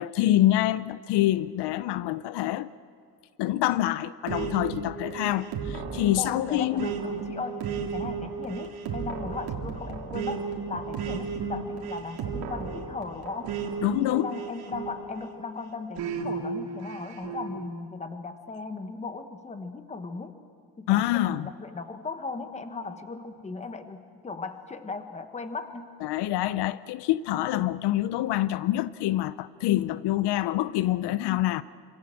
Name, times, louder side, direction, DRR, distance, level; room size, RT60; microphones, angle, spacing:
voice 1, 0.0-2.7 3.4-6.9 13.8-14.3 20.9-21.5 26.0-31.6, left 14 dB, 80° left, 0.7 m, -26 dB
sound 1, 4.3-15.3 16.0-17.5, right 5 dB, 65° right, 3.0 m, -34 dB
voice 2, 6.2-7.6 7.9-13.5 13.9-20.3 20.8-25.9, left 4 dB, 15° left, 1.2 m, -37 dB
26.5 x 26.0 x 7.5 m
cardioid pair, 175°, 40 cm